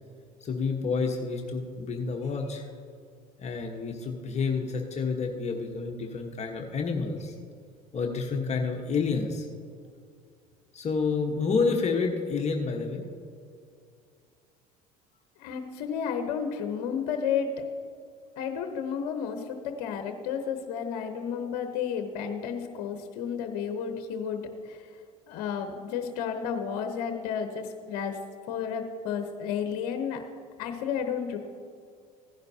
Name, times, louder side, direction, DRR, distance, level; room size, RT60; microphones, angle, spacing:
voice 1, 0.4-2.7 3.4-7.3 7.9-9.5 10.7-13.0, left 4 dB, 35° left, 2 dB, 1.2 m, -29 dB
voice 2, 15.4-17.7 18.4-24.9 25.3-28.2 28.5-30.2 30.6-31.4, left 7 dB, 65° left, 6 dB, 0.9 m, -32 dB
16.0 x 10.5 x 2.8 m, 2.3 s
hypercardioid pair, 75°, 19 cm